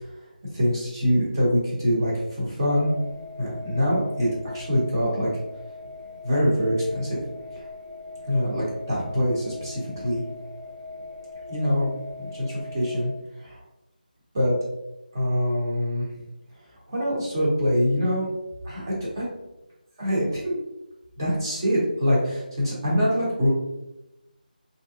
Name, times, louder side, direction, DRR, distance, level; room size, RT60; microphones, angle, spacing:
voice 1, 0.5-2.9 3.4-4.3 4.5-5.3 6.2-7.2 7.5-7.6 8.3-10.2 11.5-11.9 12.2-13.1 13.4-13.6 14.3-14.5 15.1-16.1 16.9-18.3 18.6-19.2 20.0-20.5 21.2-23.5, equal, 25° right, -6 dB, 1.2 m, -24 dB
sound 1, 2.7-13.1, left 3 dB, 55° right, 0.9 m, -40 dB
5.0 x 2.7 x 2.5 m, 0.96 s
figure-of-eight pair, 175°, 5 cm